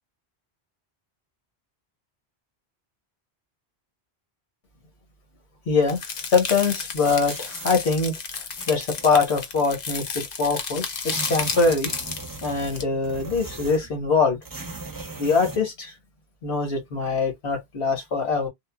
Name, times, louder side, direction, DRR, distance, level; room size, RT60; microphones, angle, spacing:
voice 1, 5.7-6.0 6.3-11.9 12.4-14.4 15.2-15.9 16.4-18.5, left 4 dB, 85° left, 1.4 m, -23 dB
sound 1, 5.9-12.8, left 5 dB, 50° left, 0.7 m, -32 dB
sound 2, 7.0-7.8 8.3-9.2 10.1-10.2 10.4-10.5 10.8-13.9 14.4-15.6, right 3 dB, 25° right, 0.6 m, -38 dB
3.6 x 2.1 x 2.2 m
omnidirectional pair, 1.1 m